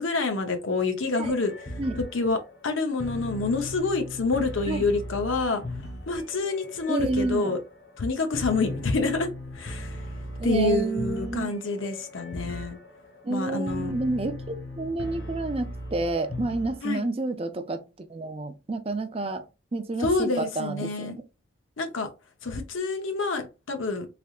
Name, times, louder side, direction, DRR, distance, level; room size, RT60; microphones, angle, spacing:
voice 1, 0.0-1.5 2.1-5.6 6.1-7.6 8.0-10.0 10.4-12.8 13.3-13.9 16.8-17.1 20.0-21.2 21.8-22.1 22.4-24.1, left 3 dB, 85° left, 0.8 m, -27 dB
sound 1, 1.1-17.0, left 1 dB, 60° left, 1.1 m, -38 dB
voice 2, 6.9-7.6 10.4-11.5 13.2-17.8 18.1-19.4 19.7-21.2, right 2 dB, 30° right, 0.5 m, -29 dB
3.8 x 3.3 x 2.4 m
head